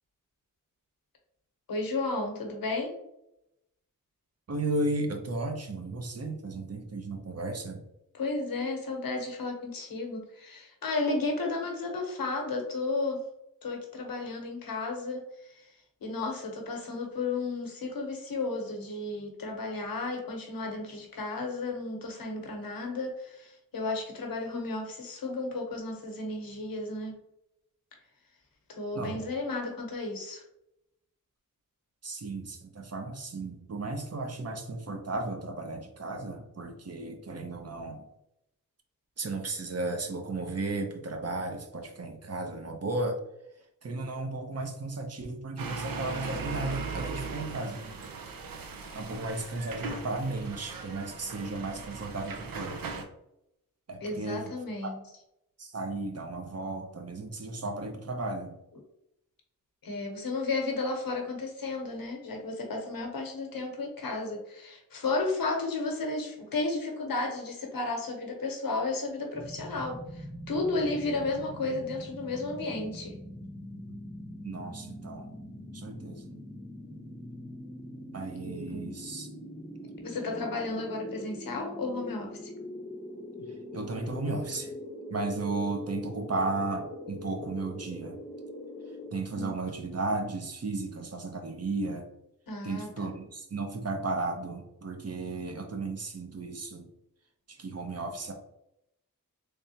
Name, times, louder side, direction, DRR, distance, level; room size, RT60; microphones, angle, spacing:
voice 1, 1.7-3.0 8.1-13.2 13.6-15.7 16.0-27.1 28.7-30.4 54.0-55.0 59.8-73.2 78.4-79.0 80.0-82.5 89.3-89.5 92.5-93.1, left 3 dB, 85° left, 2 dB, 0.9 m, -33 dB
voice 2, 4.5-7.8 28.9-29.2 32.0-38.0 39.2-43.2 43.8-47.8 48.9-53.0 53.9-54.5 55.6-58.6 74.4-75.3 75.7-76.4 78.1-79.3 83.7-84.7 85.1-88.2 89.1-92.1 92.6-96.9 97.5-98.3, right 2 dB, 45° right, 4 dB, 0.7 m, -34 dB
sound 1, 45.6-53.0, right 4 dB, 85° right, 0.6 m, -39 dB
sound 2, 69.3-89.1, left 1 dB, 15° left, 0.6 m, -43 dB
3.4 x 3.3 x 2.8 m, 0.83 s
wide cardioid pair, 80°, 34 cm